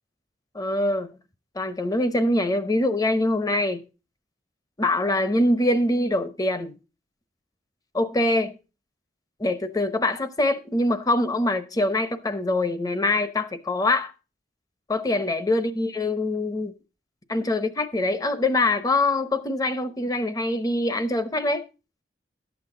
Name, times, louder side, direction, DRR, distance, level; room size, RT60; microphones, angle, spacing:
voice 1, 0.5-1.1 1.5-3.8 4.8-6.7 7.9-8.5 9.4-14.1 14.9-16.7 17.3-21.6, left 2 dB, 20° left, 0.9 m, -24 dB
12.0 x 8.1 x 3.8 m
head